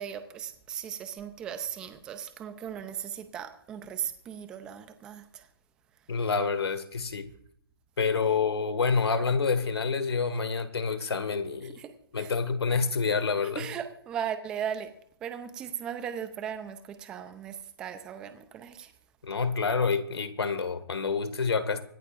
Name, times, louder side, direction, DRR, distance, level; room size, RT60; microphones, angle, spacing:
voice 1, 0.0-5.5 11.8-12.3 13.6-14.9 15.2-18.9, right 8 dB, 5° right, 0.6 m, -37 dB
voice 2, 6.1-7.3 8.0-11.8 12.1-13.7 19.2-21.8, left 5 dB, 85° left, 2.0 m, -28 dB
25.5 x 11.5 x 2.6 m
hypercardioid pair, 170°, 13 cm